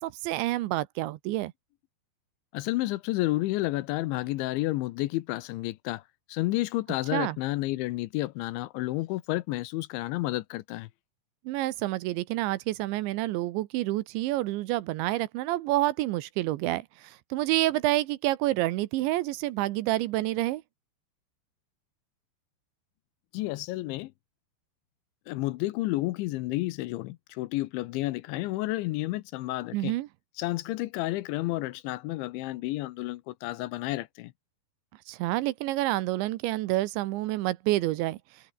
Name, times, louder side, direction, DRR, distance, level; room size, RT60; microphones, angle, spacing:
voice 1, 0.0-1.5 7.1-7.4 11.5-20.6 29.7-30.1 35.1-38.2, right 17 dB, 80° right, 3.1 m, -28 dB
voice 2, 2.5-6.0 6.3-10.9 23.3-24.1 25.3-29.9 30.4-34.3, left 18 dB, 85° left, 3.0 m, -31 dB
omnidirectional pair, 5.6 m